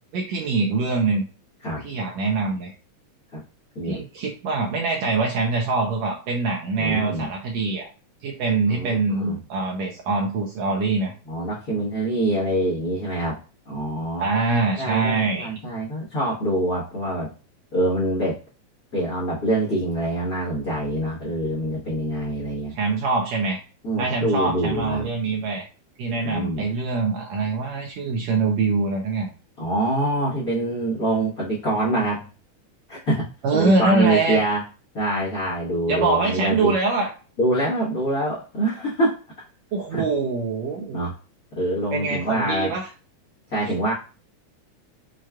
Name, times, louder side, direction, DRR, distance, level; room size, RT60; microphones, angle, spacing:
voice 1, 0.1-1.2 1.8-2.7 3.8-7.9 8.2-11.1 14.2-15.5 22.7-23.6 24.0-25.7 26.0-29.3 33.4-34.4 35.9-37.1 39.7-41.0 41.9-42.9, right 3 dB, 85° right, 1 dB, 1.6 m, -24 dB
voice 2, 6.8-7.3 8.7-9.4 11.3-13.4 13.7-14.3 14.8-17.3 17.7-18.4 18.9-22.7 23.8-25.1 26.2-26.6 29.6-32.3 32.9-33.3 33.5-34.6 34.9-36.7 37.4-39.2 39.9-40.0 40.9-41.1 41.5-42.7 43.5-43.9, right 1 dB, 80° left, -5 dB, 0.8 m, -25 dB
6.1 x 2.3 x 2.2 m, 0.35 s
omnidirectional pair, 3.6 m